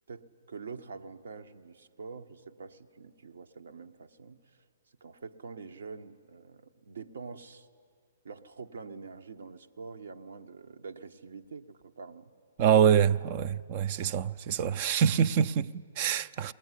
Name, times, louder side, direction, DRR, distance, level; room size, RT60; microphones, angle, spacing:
voice 1, 0.1-4.6 5.0-7.7 8.2-12.3, right 4 dB, 70° right, 1.1 m, -45 dB
voice 2, 12.6-16.5, right 8 dB, 40° right, 0.5 m, -25 dB
20.0 x 19.5 x 9.9 m
hypercardioid pair, 130°, 0 cm